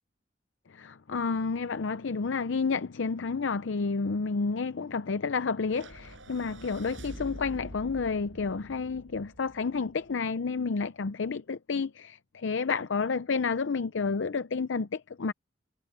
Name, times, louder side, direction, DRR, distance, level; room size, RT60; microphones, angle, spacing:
voice 1, 0.7-15.3, left 4 dB, 75° left, 0.6 m, -30 dB
sound 1, 5.7-10.1, right 1 dB, 85° right, 5.6 m, -46 dB
head